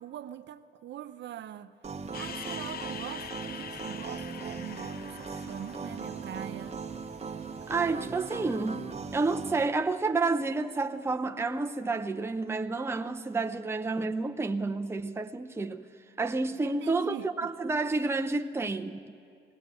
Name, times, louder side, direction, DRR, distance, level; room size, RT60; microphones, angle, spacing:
voice 1, 0.0-1.8 2.1-6.8 16.6-17.5, right 10 dB, 65° right, 0.8 m, -43 dB
sound 1, 1.8-9.7, right 5 dB, 35° right, 1.1 m, -39 dB
sound 2, 2.1-7.5, left 9 dB, 50° left, 0.6 m, -44 dB
voice 2, 7.7-15.9 16.2-19.2, right 3 dB, 10° right, 0.7 m, -30 dB
20.0 x 18.0 x 7.7 m
cardioid pair, 90°, 20 cm